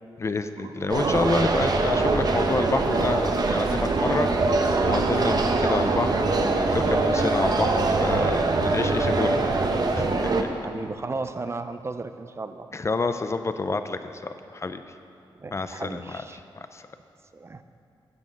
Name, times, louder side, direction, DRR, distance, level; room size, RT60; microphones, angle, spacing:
voice 1, 0.2-4.3 4.8-9.4 9.9-10.1 12.7-14.2 14.5-14.8 15.5-16.2 16.6-16.9, left 3 dB, 35° left, 9 dB, 0.5 m, -28 dB
sound 1, 0.6-7.2, right 5 dB, 90° right, 0.6 m, -38 dB
sound 2, 0.9-10.4, right 3 dB, 50° right, 0.9 m, -23 dB
voice 2, 10.6-12.7 15.4-16.4 17.3-17.6, right 3 dB, 30° right, 10 dB, 0.5 m, -35 dB
13.5 x 6.2 x 7.8 m, 2.5 s
wide cardioid pair, 115°, 9 cm